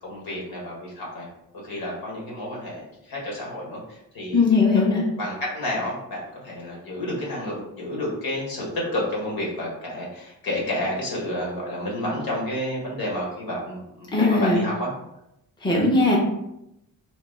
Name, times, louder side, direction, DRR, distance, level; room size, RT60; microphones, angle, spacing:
voice 1, 0.0-1.3 1.6-4.4 5.2-14.9, left 1 dB, 70° left, -3 dB, 1.5 m, -30 dB
voice 2, 4.3-5.0 14.1-14.6 15.6-16.2, left 3 dB, 10° left, -3 dB, 0.8 m, -19 dB
2.9 x 2.8 x 3.6 m, 0.84 s
cardioid pair, 100°, 38 cm